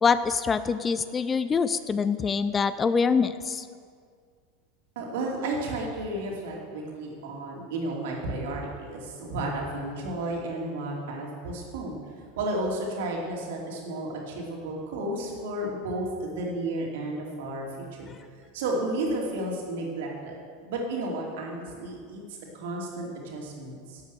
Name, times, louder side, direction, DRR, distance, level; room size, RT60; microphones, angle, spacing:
voice 1, 0.0-3.7, left 5 dB, 20° left, 13 dB, 0.4 m, -25 dB
voice 2, 5.0-12.0 12.4-18.1 18.5-24.0, right 1 dB, 60° right, -1 dB, 2.7 m, -32 dB
12.0 x 8.0 x 6.7 m, 2.1 s
figure-of-eight pair, 80°, 0 cm